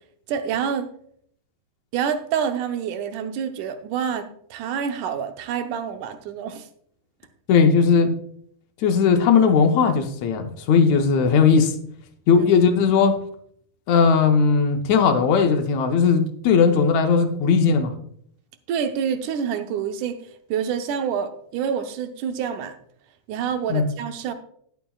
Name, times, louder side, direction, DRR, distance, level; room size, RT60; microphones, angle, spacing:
voice 1, 0.3-0.9 1.9-6.7 12.4-12.5 18.7-20.2 20.5-22.7 23.3-24.3, right 7 dB, 90° right, 2.4 m, -27 dB
voice 2, 7.5-8.1 8.8-11.7 12.3-13.2 13.9-17.9 23.7-23.9, left 5 dB, 75° left, 2.0 m, -18 dB
19.5 x 7.0 x 2.3 m
omnidirectional pair, 3.4 m